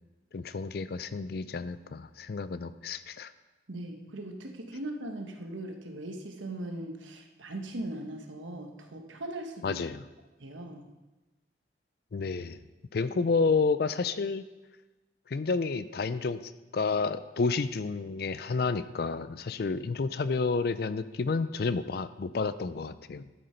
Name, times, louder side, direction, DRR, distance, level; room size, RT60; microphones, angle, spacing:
voice 1, 0.3-3.3 9.6-10.0 12.1-12.6 12.9-14.5 15.3-23.3, left 4 dB, 55° left, 14 dB, 0.4 m, -30 dB
voice 2, 3.7-9.8 10.4-10.9, right 1 dB, 90° right, 4 dB, 1.2 m, -39 dB
12.0 x 6.5 x 4.4 m, 1.1 s
head